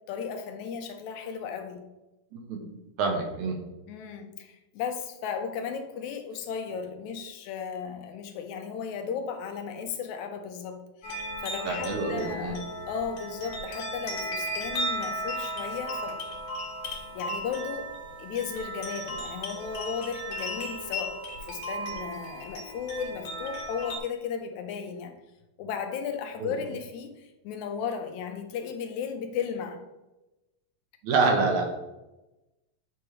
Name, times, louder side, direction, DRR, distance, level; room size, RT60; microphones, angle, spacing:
voice 1, 0.1-1.9 3.9-10.9 11.4-16.2 17.1-17.9 18.2-25.2 25.6-29.8, left 7 dB, 85° left, 6 dB, 2.1 m, -35 dB
voice 2, 2.3-2.7 3.0-3.6 11.7-12.6 26.4-26.5 31.0-31.7, right 4 dB, 80° right, 2 dB, 2.5 m, -26 dB
sound 1, 11.0-24.0, equal, 70° left, 2.5 m, -35 dB
8.7 x 4.8 x 3.0 m, 1.0 s
omnidirectional pair, 3.3 m